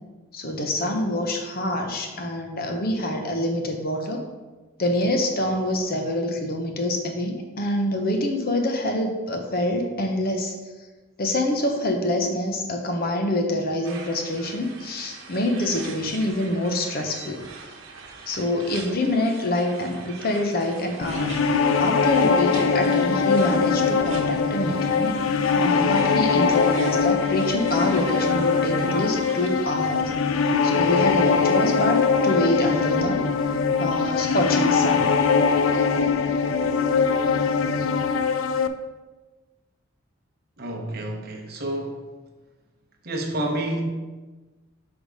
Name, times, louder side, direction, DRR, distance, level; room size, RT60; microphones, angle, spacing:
voice 1, 0.3-4.2 4.8-10.5 11.2-17.4 18.3-21.4 21.8-25.2 25.5-30.1 30.6-33.2 33.8-35.1, left 1 dB, 45° left, 3 dB, 0.9 m, -26 dB
sound 1, 13.8-29.7, right 4 dB, 80° right, 1.0 m, -42 dB
sound 2, 21.0-38.7, left 5 dB, 80° left, 0.4 m, -22 dB
voice 2, 40.6-42.1 43.0-43.9, right 1 dB, 50° right, 1 dB, 0.9 m, -29 dB
6.3 x 3.6 x 5.1 m, 1.2 s
head